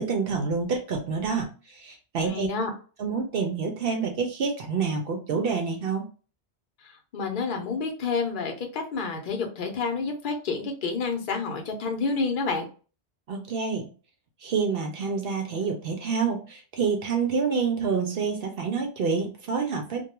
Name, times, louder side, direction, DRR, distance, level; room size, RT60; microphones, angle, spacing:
voice 1, 0.0-2.5 3.0-6.0 13.3-13.9 14.4-20.0, right 5 dB, 65° right, 3 dB, 0.7 m, -27 dB
voice 2, 2.3-2.7 7.1-12.6, left 4 dB, 55° left, 3 dB, 0.8 m, -29 dB
2.3 x 2.1 x 2.9 m, 0.36 s
omnidirectional pair, 1.1 m